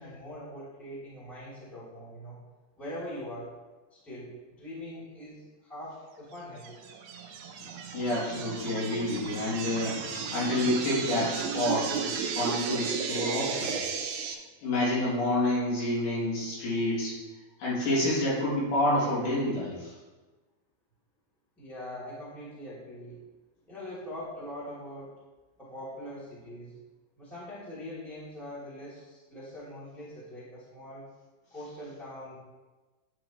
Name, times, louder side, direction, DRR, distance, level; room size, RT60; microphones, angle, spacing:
voice 1, 0.0-2.4 2.7-3.5 3.9-6.9 21.6-23.2 23.7-25.1 25.6-26.8 27.2-31.0 31.5-32.4, left 1 dB, ahead, -9 dB, 1.9 m, -42 dB
sound 1, 6.6-14.3, right 6 dB, 80° right, 1.7 m, -34 dB
voice 2, 7.6-13.8 14.6-17.2 17.6-19.9, left 1 dB, 70° left, -7 dB, 4.4 m, -29 dB
10.0 x 7.0 x 3.1 m, 1.2 s
omnidirectional pair, 4.6 m